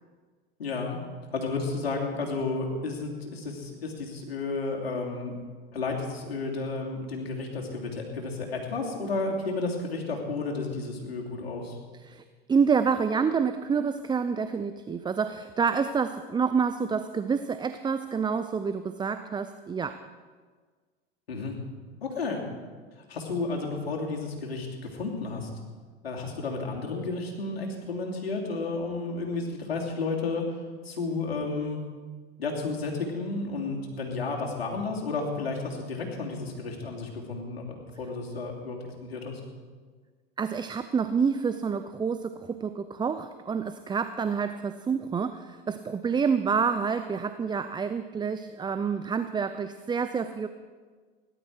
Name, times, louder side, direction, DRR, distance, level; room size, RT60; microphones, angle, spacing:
voice 1, 0.6-1.0 1.3-5.4 5.7-11.8 21.3-21.5 22.0-22.4 23.0-24.7 24.9-25.5 26.0-30.4 30.8-31.8 32.4-37.7 38.0-39.4, left 3 dB, 85° left, 0 dB, 3.1 m, -32 dB
voice 2, 12.5-20.0 40.4-50.5, right 6 dB, 15° right, 11 dB, 0.5 m, -28 dB
17.5 x 12.0 x 4.8 m, 1.5 s
hypercardioid pair, 90°, 30 cm